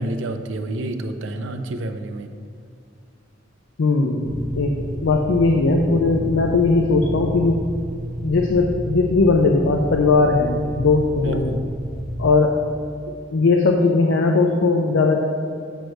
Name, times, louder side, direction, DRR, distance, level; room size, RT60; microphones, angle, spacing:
voice 1, 0.0-2.3 11.2-11.7, right 1 dB, 75° right, 7 dB, 0.5 m, -29 dB
voice 2, 3.8-7.6 8.2-11.5 12.2-12.6 13.3-15.2, left 3 dB, 85° left, 2 dB, 0.6 m, -18 dB
sound 1, 4.2-12.3, equal, 40° left, 1.1 m, -31 dB
8.1 x 3.2 x 6.2 m, 2.3 s
head